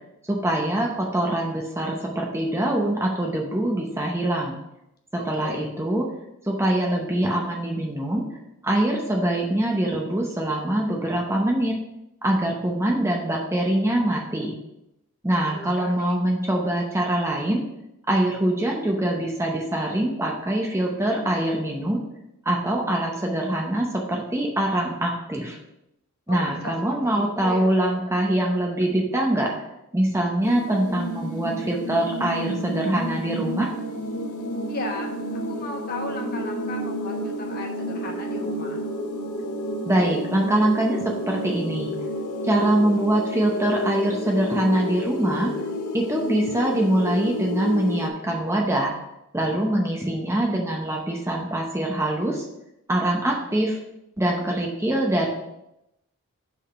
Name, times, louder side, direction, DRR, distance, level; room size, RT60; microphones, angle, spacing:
voice 1, 0.2-4.5 5.3-6.1 6.4-8.2 8.6-11.8 12.2-14.5 15.2-17.6 18.1-22.0 22.4-25.6 26.3-29.5 29.9-33.7 39.9-41.9 42.4-45.5 45.9-48.9 49.3-52.4 52.9-53.8 54.2-55.3, right 1 dB, 10° right, 0 dB, 0.7 m, -24 dB
voice 2, 5.1-5.7 15.5-16.2 26.3-27.7 34.7-35.1 35.5-38.8, left 2 dB, 40° left, 1 dB, 1.1 m, -35 dB
sound 1, 30.4-48.1, equal, 75° left, 0.8 m, -30 dB
6.0 x 3.7 x 5.7 m, 0.87 s
head